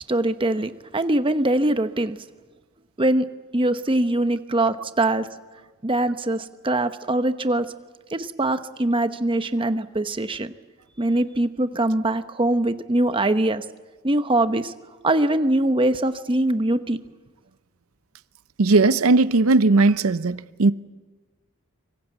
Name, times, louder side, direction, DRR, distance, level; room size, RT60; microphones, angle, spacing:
voice 1, 0.1-2.2 3.0-3.3 3.5-5.3 5.8-7.7 8.1-10.5 11.0-13.6 14.0-14.7 15.0-17.0, right 1 dB, 25° right, 0.9 m, -22 dB
voice 2, 18.6-20.7, right 3 dB, 70° right, 0.7 m, -18 dB
24.5 x 22.5 x 8.2 m
head